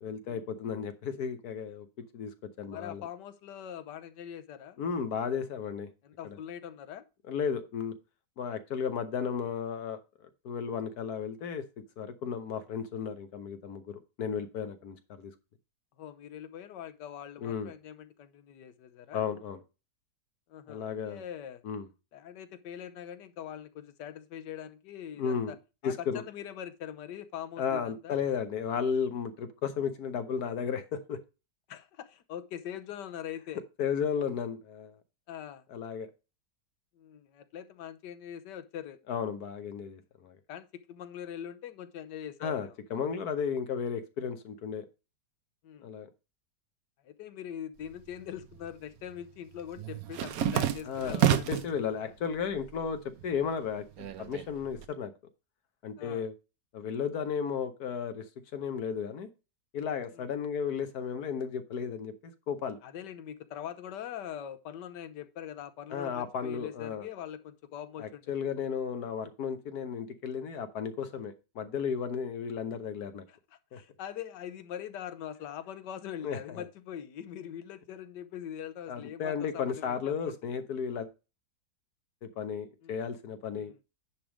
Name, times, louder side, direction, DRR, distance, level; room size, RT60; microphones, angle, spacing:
voice 1, 0.0-1.9 2.1-3.0 4.8-5.9 6.2-6.4 7.3-7.9 8.4-10.0 10.4-11.6 12.0-15.3 17.4-17.7 19.1-19.6 20.7-21.2 21.6-21.9 25.2-25.5 25.8-26.2 27.6-31.2 33.8-34.9 35.7-36.1 39.1-40.4 42.4-44.9 45.8-46.1 50.8-55.1 55.8-56.3 56.7-58.2 58.5-59.3 59.7-62.8 65.9-67.1 68.0-73.2 73.7-73.8 76.2-76.6 78.9-81.1 82.2-83.7, left 7 dB, 65° left, 1.4 m, -34 dB
voice 2, 2.7-4.8 6.0-7.0 16.0-19.2 20.5-21.6 22.1-25.5 25.8-28.2 31.7-33.6 35.3-35.6 37.0-39.0 40.5-42.7 45.6-45.9 47.0-52.1 56.0-56.3 60.1-60.3 62.8-68.3 73.3-73.4 73.7-80.2 82.8-82.9 83.5-83.8, left 9 dB, 90° left, 1.4 m, -42 dB
sound 1, 47.9-48.7 49.0-51.8 52.2-52.9 53.2-54.8, right 10 dB, 65° right, 1.1 m, -30 dB
10.0 x 3.5 x 6.1 m
omnidirectional pair, 1.8 m